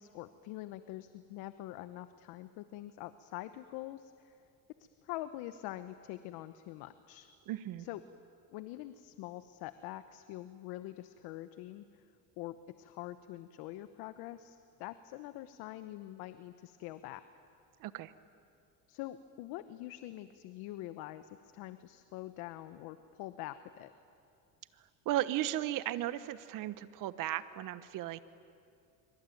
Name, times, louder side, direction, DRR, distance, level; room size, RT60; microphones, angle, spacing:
voice 1, 0.0-4.4 5.0-7.3 7.8-8.0 8.5-12.0 12.4-17.2 18.9-23.9, left 15 dB, 75° left, 11 dB, 1.0 m, -45 dB
voice 2, 7.5-7.9 17.8-18.1 25.0-28.2, right 14 dB, 60° right, 13 dB, 1.3 m, -35 dB
25.5 x 25.0 x 9.2 m, 2.4 s
cardioid pair, 115°, 37 cm